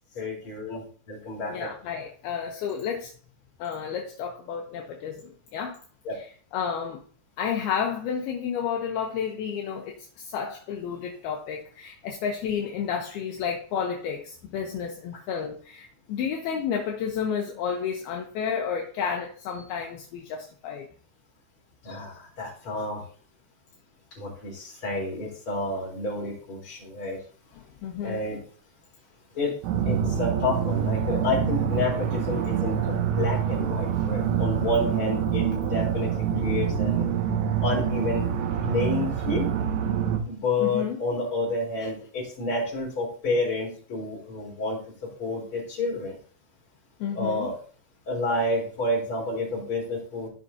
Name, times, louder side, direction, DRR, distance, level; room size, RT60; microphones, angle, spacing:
voice 1, 0.1-0.8 1.1-1.5 6.0-6.2 21.8-23.0 24.2-27.2 28.0-28.4 29.3-29.5 29.8-36.1 36.4-37.1 37.6-38.3 38.6-39.5 40.2-44.8 45.2-46.2 47.1-47.5 48.1-50.3, left 2 dB, 30° left, -3 dB, 4.1 m, -29 dB
voice 2, 1.5-3.1 3.6-5.8 6.2-7.0 7.4-20.9 27.8-28.3 40.6-41.0 41.8-41.9 47.0-47.5, left 7 dB, 75° left, 1 dB, 2.5 m, -31 dB
sound 1, 29.6-40.2, right 8 dB, 75° right, 3.0 m, -26 dB
15.5 x 5.9 x 2.8 m, 0.43 s
omnidirectional pair, 5.4 m